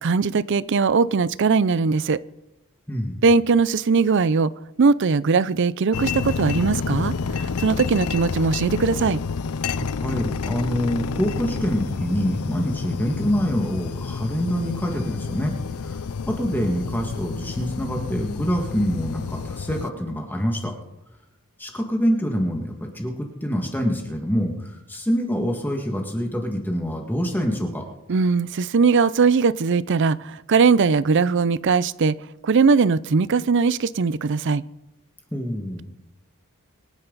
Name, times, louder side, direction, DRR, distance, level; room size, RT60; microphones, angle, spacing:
voice 1, 0.0-2.2 3.2-4.5 4.8-9.2 28.1-32.2 32.4-34.6, right 4 dB, 55° right, 19 dB, 0.5 m, -20 dB
voice 2, 2.9-3.2 9.8-15.5 15.8-16.0 16.3-20.7 21.6-27.8 35.3-35.8, equal, 10° left, 2 dB, 1.9 m, -26 dB
sound 1, 5.9-19.9, left 5 dB, 80° left, 0.5 m, -29 dB
26.0 x 10.0 x 4.0 m, 0.94 s
head